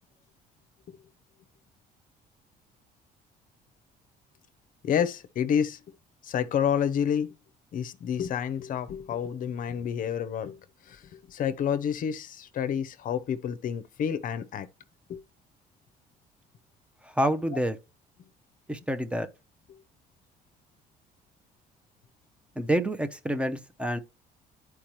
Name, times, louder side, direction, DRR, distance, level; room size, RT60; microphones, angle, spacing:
voice 1, 4.8-5.8 6.2-7.3 7.7-10.6 10.9-14.7 15.1-15.2, left 8 dB, 55° left, 0.6 m, -29 dB
voice 2, 17.2-17.8 18.7-19.3 22.6-24.0, right 1 dB, 5° right, 0.6 m, -27 dB
10.0 x 4.7 x 3.0 m
cardioid pair, 110°, 17 cm